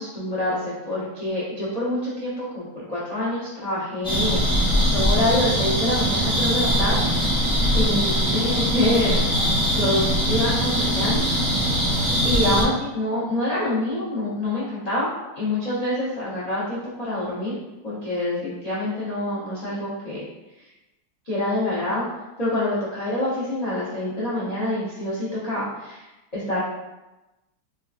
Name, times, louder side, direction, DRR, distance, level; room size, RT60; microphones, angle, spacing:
voice 1, 0.0-4.4 4.9-7.1 7.7-9.2 9.7-11.2 12.2-15.1 15.3-17.6 17.8-20.2 20.6-20.7 21.3-22.1 22.4-26.6, left 1 dB, 75° left, -9 dB, 0.3 m, -26 dB
sound 1, 4.0-12.6, equal, 5° left, 0.5 m, -22 dB
4.4 x 2.3 x 2.4 m, 1.0 s
omnidirectional pair, 2.1 m